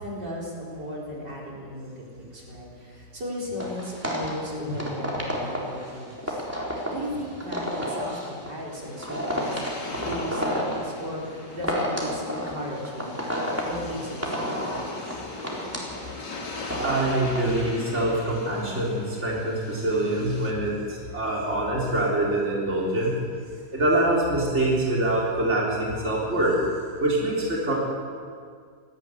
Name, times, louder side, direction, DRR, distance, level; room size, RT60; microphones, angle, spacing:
voice 1, 0.0-6.5 6.9-13.3 13.6-14.2, equal, 70° right, -4 dB, 4.8 m, -36 dB
sound 1, 3.6-17.4, equal, 5° right, 4.0 m, -31 dB
sound 2, 8.3-20.5, left 3 dB, 75° left, 3.2 m, -40 dB
voice 2, 16.8-23.1 23.7-26.6 27.0-27.7, right 1 dB, 40° right, -4 dB, 4.2 m, -25 dB
19.0 x 14.5 x 9.4 m, 2.1 s
omnidirectional pair, 1.9 m